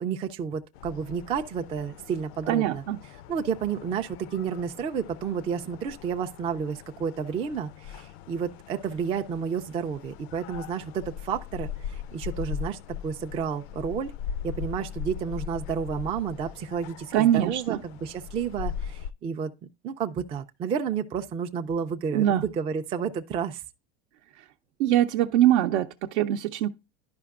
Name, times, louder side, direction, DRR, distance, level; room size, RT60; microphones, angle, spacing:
voice 1, 0.0-2.8 3.3-14.1 14.4-19.5 19.8-23.6, right 7 dB, 20° right, 0.3 m, -31 dB
sound 1, 0.7-19.1, left 8 dB, 70° left, 0.5 m, -40 dB
voice 2, 2.5-3.0 17.1-17.8 22.1-22.4 24.4-24.5 24.8-26.7, right 12 dB, 80° right, 0.7 m, -23 dB
11.0 x 5.1 x 2.3 m
supercardioid pair, 135°, 33 cm